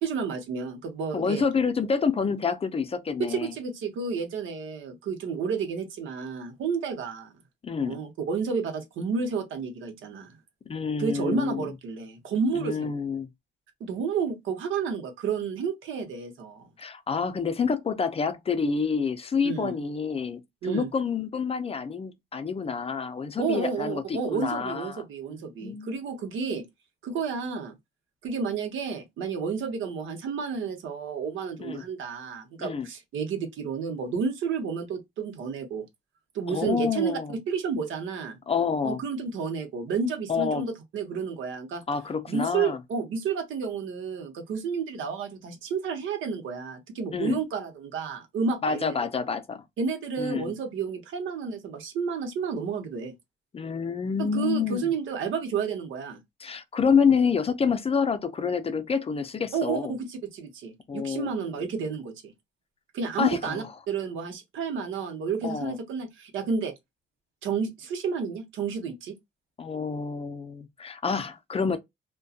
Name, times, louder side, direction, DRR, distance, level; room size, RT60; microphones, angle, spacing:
voice 1, 0.0-1.4 3.2-7.3 7.8-10.3 11.0-12.9 13.8-16.7 19.4-19.7 20.6-20.9 23.4-26.6 27.0-27.7 28.2-35.8 36.3-37.2 37.5-38.4 38.8-41.8 42.3-49.0 49.8-53.1 54.2-56.2 59.5-62.3 62.9-66.7 67.4-69.2, right 5 dB, 75° right, 0.8 m, -31 dB
voice 2, 1.1-3.5 7.6-8.0 10.7-11.7 12.5-13.3 16.8-25.0 25.3-25.9 31.6-31.8 32.6-32.9 36.5-37.3 38.5-39.0 40.3-40.6 41.9-42.8 47.1-47.4 48.6-49.6 50.2-50.5 53.5-54.8 56.4-59.9 60.9-61.6 63.2-63.6 65.4-65.7 69.6-71.8, left 6 dB, 30° left, 0.4 m, -28 dB
2.6 x 2.2 x 2.3 m
cardioid pair, 90°, 20 cm